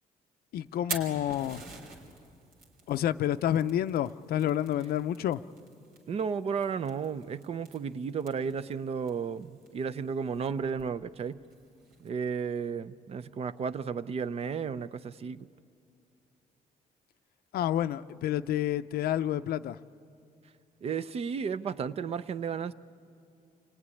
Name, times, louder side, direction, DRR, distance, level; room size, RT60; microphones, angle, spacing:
voice 1, 0.5-1.6 2.9-5.4 17.5-19.8, left 11 dB, 85° left, 0.6 m, -29 dB
Fire, 0.7-12.1, right 3 dB, 85° right, 3.4 m, -47 dB
voice 2, 6.1-11.4 12.0-15.5 20.8-22.7, right 6 dB, 40° right, 0.6 m, -33 dB
28.5 x 20.5 x 9.8 m
cardioid pair, 170°, 15 cm